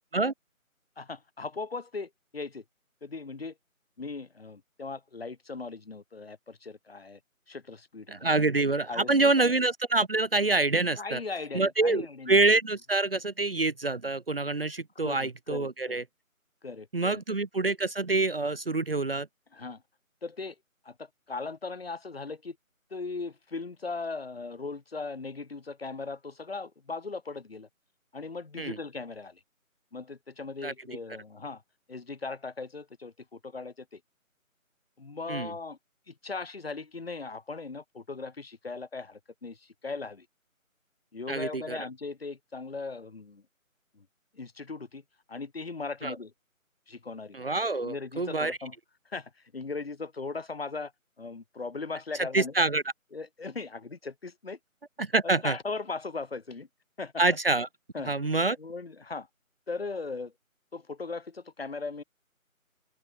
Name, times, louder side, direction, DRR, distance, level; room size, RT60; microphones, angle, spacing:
voice 1, 1.0-2.6 3.0-3.5 4.0-7.2 7.5-8.4 8.9-9.5 11.0-12.4 15.0-16.0 16.6-17.2 19.5-19.8 20.2-20.6 20.8-22.6 22.9-27.7 28.1-29.4 29.9-31.6 31.9-34.0 35.0-35.8 36.1-40.3 41.1-43.4 43.9-44.1 44.3-45.0 45.3-46.3 46.9-47.4 47.8-48.7 49.1-50.9 51.2-52.5 53.1-54.6 55.2-56.7 57.0-57.2 57.9-58.1 58.6-59.3 59.7-60.3 60.7-62.0, left 4 dB, 45° left, 7.7 m, -38 dB
voice 2, 8.1-11.2 11.5-16.0 16.9-19.3 28.6-28.8 30.6-30.7 35.3-35.5 41.3-41.8 46.0-46.2 47.3-48.6 52.3-52.8 55.0-55.6 57.2-57.7 58.1-58.6, right 3 dB, 45° right, 1.2 m, -26 dB
open air
figure-of-eight pair, 165°, 42 cm